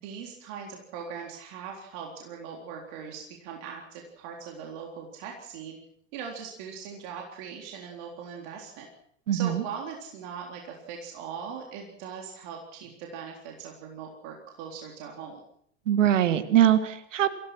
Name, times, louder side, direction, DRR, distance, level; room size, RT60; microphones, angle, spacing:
voice 1, 0.0-5.8 6.1-8.9 9.3-15.4, right 6 dB, 60° right, 0 dB, 3.9 m, -40 dB
voice 2, 9.3-9.6 15.9-17.3, right 11 dB, 80° right, 11 dB, 1.9 m, -22 dB
26.5 x 17.0 x 6.2 m, 0.67 s
hypercardioid pair, 80°, 37 cm